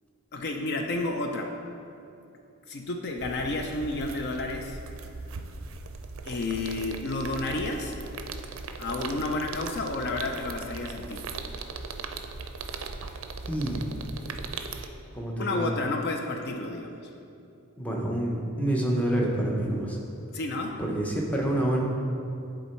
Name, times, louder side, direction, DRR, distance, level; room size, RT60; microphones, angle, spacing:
voice 1, 0.3-1.5 2.7-4.8 6.3-7.9 8.8-11.3 15.4-17.1 20.3-20.8, left 2 dB, 50° left, 3 dB, 0.4 m, -31 dB
sound 1, 3.2-14.9, right 4 dB, 65° right, 0.4 m, -39 dB
voice 2, 13.4-13.8 15.1-15.7 17.8-20.0 20.8-21.8, right 1 dB, 5° left, -2 dB, 0.7 m, -27 dB
9.8 x 3.7 x 4.3 m, 2.6 s
head